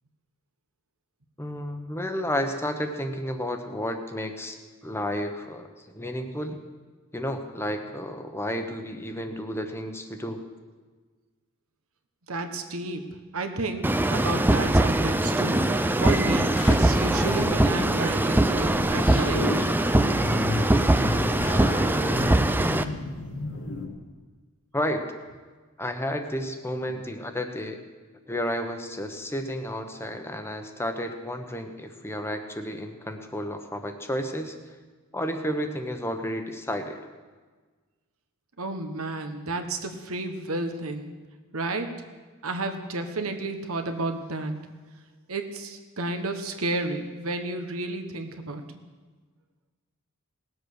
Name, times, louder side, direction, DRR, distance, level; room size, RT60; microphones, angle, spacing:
voice 1, 1.4-4.6 4.8-6.6 7.1-10.4 24.7-25.0 25.8-27.8 28.3-34.6 35.1-37.0, equal, 10° left, 6 dB, 1.0 m, -31 dB
voice 2, 12.3-15.7 16.0-19.5 38.6-41.1 41.5-41.9 42.4-44.6 45.3-48.6, right 2 dB, 70° right, 6 dB, 1.3 m, -31 dB
Escalator Mono, 13.8-22.8, right 1 dB, 10° right, 0.4 m, -22 dB
sound 1, 15.4-23.9, left 2 dB, 80° left, 2.4 m, -34 dB
18.5 x 8.0 x 6.5 m, 1.4 s
head